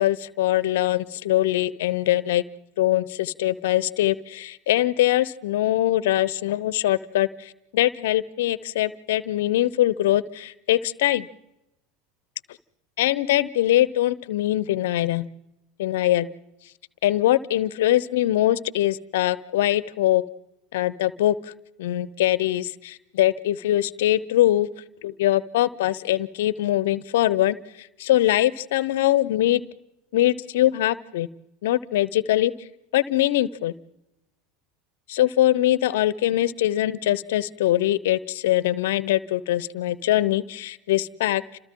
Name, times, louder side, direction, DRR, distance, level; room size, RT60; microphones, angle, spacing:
voice 1, 0.0-2.4 2.8-11.3 13.0-15.3 15.8-16.3 17.0-20.2 20.7-21.5 21.8-24.7 25.0-29.6 30.1-31.3 31.6-32.5 32.9-33.7 35.1-41.4, left 14 dB, 75° left, 18 dB, 0.8 m, -22 dB
30.0 x 27.0 x 3.8 m, 0.90 s
hypercardioid pair, 90°, 0 cm